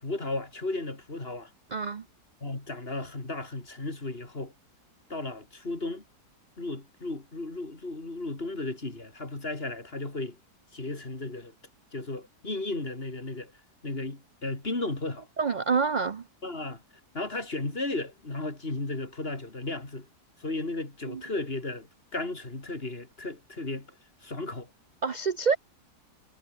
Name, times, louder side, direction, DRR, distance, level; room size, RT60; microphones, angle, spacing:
voice 1, 0.0-1.5 2.4-4.5 5.1-6.0 6.6-10.4 10.7-11.5 11.9-13.5 13.8-15.3 16.4-16.8 17.1-20.1 20.4-23.9 24.2-24.7, left 2 dB, 35° left, 3.8 m, -34 dB
voice 2, 1.7-2.0 15.4-16.2 21.1-21.2 25.0-25.6, right 5 dB, 45° right, 0.6 m, -27 dB
omnidirectional pair, 1.8 m